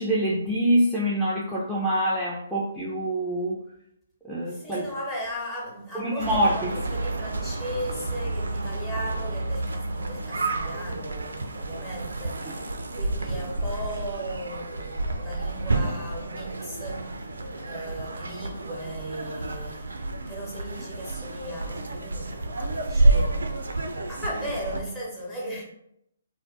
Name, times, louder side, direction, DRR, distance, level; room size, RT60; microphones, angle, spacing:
voice 1, 0.0-3.6 4.2-4.8 5.9-6.7, right 1 dB, ahead, 0.4 m, -25 dB
voice 2, 4.5-25.6, right 1 dB, 15° left, 0.9 m, -37 dB
sound 1, 6.2-24.8, right 2 dB, 75° right, 0.3 m, -29 dB
2.4 x 2.1 x 3.7 m
figure-of-eight pair, 135°, 0 cm